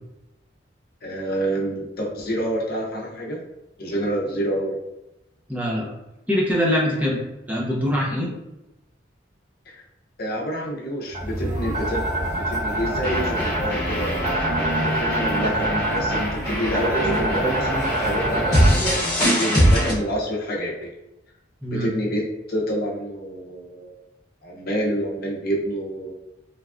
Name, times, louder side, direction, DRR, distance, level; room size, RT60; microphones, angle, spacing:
voice 1, 1.0-3.4 3.8-4.8 9.7-9.8 10.2-12.1 12.5-14.4 14.8-18.7 19.2-20.9 21.8-22.2 22.5-24.0 24.4-26.1, equal, 55° left, -3 dB, 0.7 m, -27 dB
voice 2, 5.5-5.9 6.3-7.2 7.5-8.3 21.6-21.9, equal, 10° right, -5 dB, 0.6 m, -23 dB
sound 1, 11.1-18.9, right 1 dB, 40° right, 0.8 m, -26 dB
sound 2, 13.0-19.9, equal, 20° left, 1.2 m, -23 dB
3.2 x 2.3 x 2.4 m, 0.92 s
head